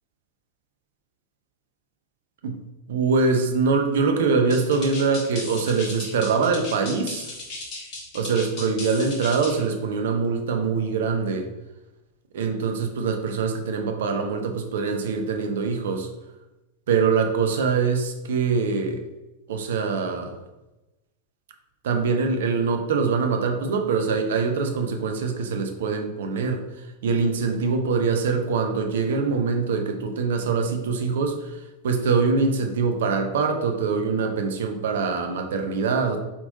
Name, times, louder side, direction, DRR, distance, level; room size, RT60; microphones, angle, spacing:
voice 1, 2.9-7.3 8.1-11.5 12.3-16.1 16.9-19.0 19.5-20.3 21.8-26.6 27.0-31.6 31.8-36.2, right 4 dB, 60° right, 4 dB, 0.6 m, -23 dB
sound 1, 4.5-9.6, left 2 dB, 40° left, 1.2 m, -36 dB
4.2 x 3.6 x 2.7 m, 1.0 s
figure-of-eight pair, 90°, 0 cm